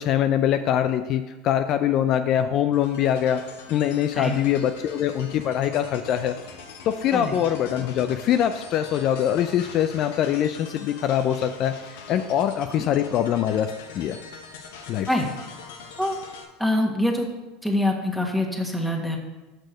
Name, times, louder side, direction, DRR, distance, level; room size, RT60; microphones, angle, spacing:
voice 1, 0.0-3.4 3.7-6.4 6.8-14.2 14.9-15.1, left 10 dB, 50° left, 8 dB, 0.4 m, -23 dB
sound 1, 2.7-16.4, left 5 dB, 80° left, 1.0 m, -43 dB
voice 2, 16.6-17.3 17.6-19.2, left 1 dB, ahead, 0 dB, 1.5 m, -24 dB
6.5 x 6.1 x 5.1 m, 1.1 s
hypercardioid pair, 100°, 0 cm